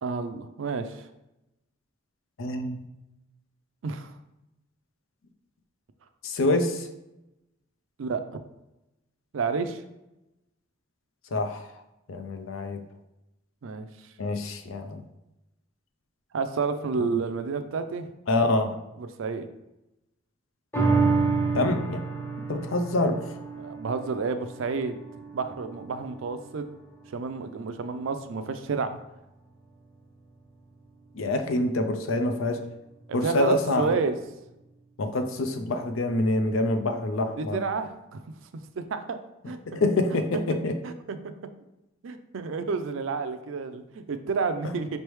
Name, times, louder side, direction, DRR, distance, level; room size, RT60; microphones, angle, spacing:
voice 1, 0.0-1.1 3.8-4.1 8.0-8.4 9.3-9.8 13.6-13.9 16.3-18.1 19.0-19.5 23.6-25.0 25.3-26.7 27.1-29.0 33.1-34.1 37.4-38.2 38.8-39.2 39.4-39.8 40.8-41.3 42.0-45.0, right 4 dB, 70° right, 9 dB, 0.4 m, -30 dB
voice 2, 2.4-2.8 6.2-6.9 11.3-11.6 12.1-12.8 14.2-15.0 17.0-17.2 18.3-18.8 21.5-22.0 22.5-23.2 31.1-32.6 33.1-33.9 35.0-37.6 39.7-40.7, left 2 dB, 80° left, 7 dB, 0.5 m, -26 dB
sound 1, 20.7-27.4 27.9-28.0, right 4 dB, 10° left, 0.7 m, -29 dB
5.2 x 3.3 x 3.1 m, 0.93 s
head